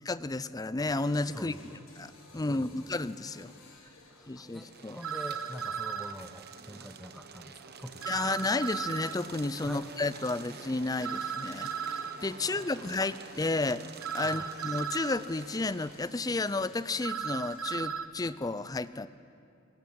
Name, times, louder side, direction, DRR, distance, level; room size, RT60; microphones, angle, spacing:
voice 1, 0.0-1.6 2.0-3.5 4.3-5.0 8.1-13.8 14.1-19.1, left 2 dB, 15° left, 15 dB, 0.5 m, -32 dB
sound 1, 0.8-18.0, left 2 dB, 80° left, 5.9 m, -57 dB
voice 2, 1.3-1.8 2.3-2.8 4.1-8.6 9.6-9.9 12.4-13.0 14.2-14.5, equal, ahead, 6 dB, 0.9 m, -46 dB
sound 2, 4.6-16.2, right 5 dB, 50° right, 1.0 m, -48 dB
sound 3, 5.0-6.1 8.0-9.2 11.0-12.2 14.0-15.2 17.0-18.1, right 7 dB, 75° right, 0.9 m, -35 dB
20.0 x 19.0 x 8.9 m, 2.5 s
head